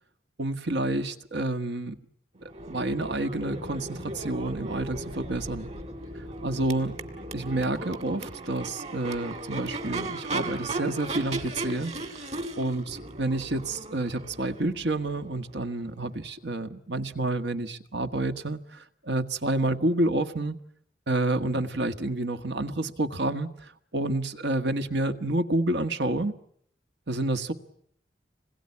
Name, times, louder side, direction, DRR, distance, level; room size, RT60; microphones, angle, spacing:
voice 1, 0.4-2.0 2.7-5.7 6.4-7.0 7.3-11.9 12.6-20.6 21.1-26.4 27.1-27.5, right 2 dB, 70° right, 9 dB, 1.5 m, -29 dB
Crowd / Race car auto racing / Accelerating revving vroom, 2.4-16.2, right 2 dB, 40° right, 2.4 m, -37 dB
26.5 x 21.5 x 9.7 m, 0.67 s
head